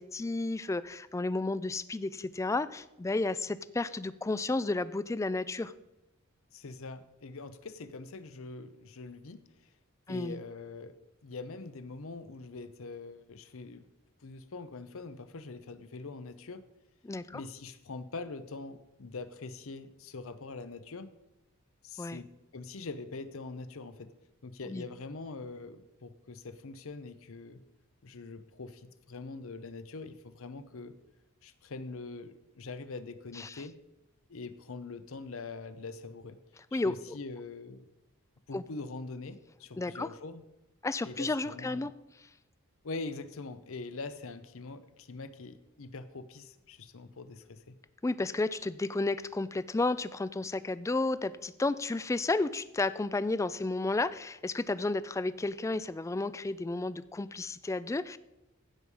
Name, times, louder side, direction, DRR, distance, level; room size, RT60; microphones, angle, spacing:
voice 1, 0.0-5.7 10.1-10.4 17.0-17.4 22.0-22.2 24.7-24.8 33.4-33.6 36.7-36.9 38.5-38.6 39.7-40.1 40.8-41.9 48.0-58.2, left 2 dB, 15° left, 16 dB, 0.3 m, -32 dB
voice 2, 6.5-9.7 10.1-10.9 11.2-13.9 14.2-16.6 17.3-21.1 21.8-24.1 24.4-27.6 28.0-30.9 31.4-33.8 34.3-36.4 36.7-37.9 38.5-40.4 41.0-41.9 42.8-47.8, left 3 dB, 65° left, 12 dB, 0.7 m, -43 dB
15.5 x 5.5 x 4.7 m, 0.93 s
head